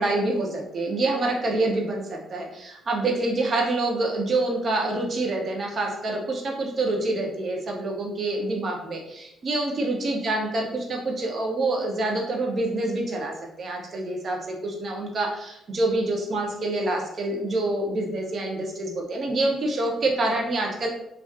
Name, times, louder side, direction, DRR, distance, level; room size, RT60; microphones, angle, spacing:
voice 1, 0.0-13.3 13.6-20.9, right 2 dB, 50° right, 0 dB, 0.7 m, -26 dB
2.5 x 2.3 x 2.3 m, 0.82 s
cardioid pair, 90°, 0 cm